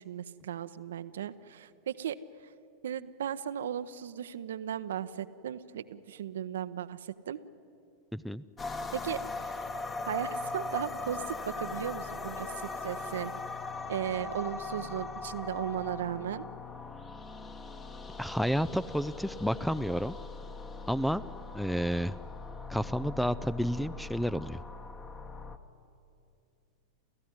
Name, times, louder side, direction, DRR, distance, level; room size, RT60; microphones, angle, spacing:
voice 1, 0.0-2.2 2.8-7.4 8.9-9.2 10.1-13.3 13.9-16.5, right 10 dB, 60° right, 13 dB, 0.8 m, -36 dB
voice 2, 8.1-8.4 18.2-20.2 20.9-21.2 21.5-22.2 22.7-24.6, equal, ahead, 18 dB, 0.5 m, -30 dB
sound 1, 8.6-25.6, left 3 dB, 20° left, 1.4 m, -40 dB
29.5 x 15.0 x 9.8 m, 2.6 s
figure-of-eight pair, 90°, 0 cm